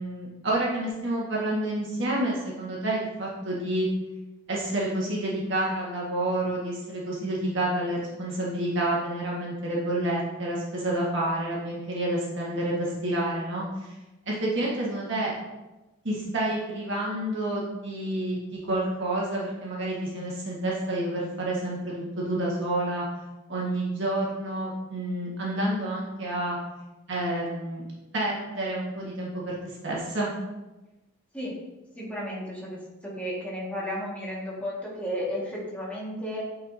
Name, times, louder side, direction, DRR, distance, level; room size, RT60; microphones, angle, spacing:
voice 1, 0.0-3.9 4.5-13.9 14.2-15.3 16.0-23.0 23.5-26.6 27.1-27.8 28.1-30.3, right 1 dB, 60° right, -5 dB, 1.6 m, -29 dB
voice 2, 32.0-36.4, equal, 5° left, -6 dB, 1.7 m, -33 dB
9.3 x 4.4 x 2.7 m, 1.0 s
head